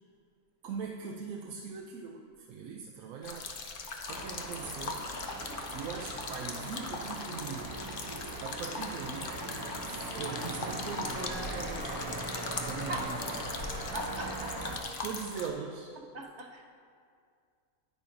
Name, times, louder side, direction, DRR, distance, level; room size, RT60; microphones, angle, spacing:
voice 1, 0.6-5.1 5.7-8.0 8.4-13.6 15.0-15.9, right 6 dB, 85° right, 1 dB, 1.1 m, -41 dB
sound 1, 3.2-15.5, left 3 dB, 50° left, 0.8 m, -40 dB
sound 2, 4.1-14.8, right 2 dB, 25° right, 0.5 m, -40 dB
voice 2, 13.9-14.9 16.1-16.6, right 2 dB, 55° right, 1 dB, 1.0 m, -41 dB
10.0 x 9.9 x 2.5 m, 2.3 s
omnidirectional pair, 1.5 m